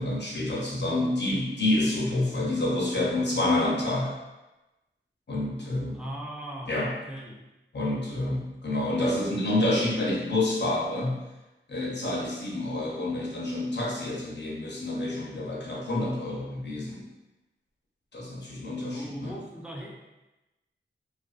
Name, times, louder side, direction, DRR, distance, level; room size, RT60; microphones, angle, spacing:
voice 1, 0.0-4.1 5.3-6.0 6.7-6.9 7.7-11.2 11.7-17.0 18.1-19.3, left 1 dB, 55° left, -4 dB, 0.6 m, -28 dB
voice 2, 5.9-7.4 18.7-19.9, right 1 dB, 5° right, -2 dB, 0.5 m, -39 dB
2.4 x 2.3 x 2.4 m, 1.0 s
wide cardioid pair, 55°, 21 cm